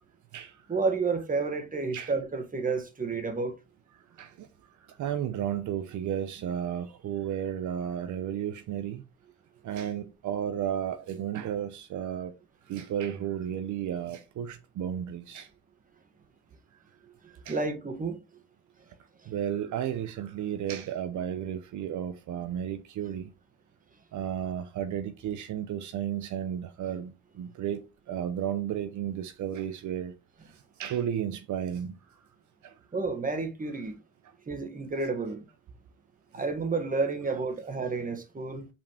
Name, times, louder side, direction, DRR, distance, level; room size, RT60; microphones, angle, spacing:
voice 1, 0.7-3.5 17.5-18.2 19.2-19.3 32.9-33.9 34.5-35.4 36.3-38.7, right 4 dB, 25° right, 1.6 m, -30 dB
voice 2, 5.0-9.0 9.6-12.3 12.7-15.5 17.5-17.6 19.3-23.3 24.1-27.1 27.4-27.8 28.1-30.1 30.8-32.0 32.6-32.7, right 9 dB, 75° right, 0.8 m, -33 dB
5.7 x 5.0 x 3.5 m
cardioid pair, 90°, 30 cm